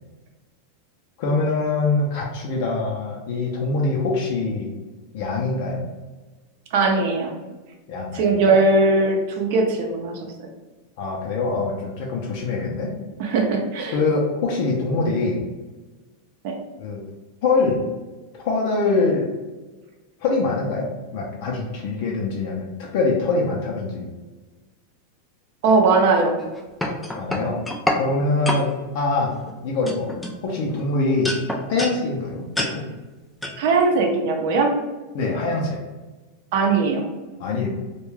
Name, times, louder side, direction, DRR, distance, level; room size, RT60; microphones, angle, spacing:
voice 1, 1.2-4.7 5.1-5.8 7.9-8.4 11.0-12.9 13.9-15.4 16.8-17.0 17.4-17.8 18.4-19.3 20.2-20.9 21.1-24.1 27.2-27.6 27.9-29.3 29.6-30.1 30.4-31.3 31.7-32.4 32.7-32.8 35.1-35.8 37.4-37.7, left 3 dB, 60° left, -2 dB, 0.5 m, -23 dB
voice 2, 6.7-7.3 8.1-10.5 13.2-14.0 16.4-16.5 25.6-26.4 33.6-34.7 36.5-37.0, right 3 dB, 60° right, 3 dB, 0.5 m, -19 dB
sound 1, 26.4-28.0 28.5-28.7 29.3-29.5 29.9-30.8 31.3-32.0 32.6-32.7 33.4-33.6, left 1 dB, 5° left, 0.3 m, -26 dB
2.2 x 2.2 x 3.1 m, 1.2 s
supercardioid pair, 130°, 0 cm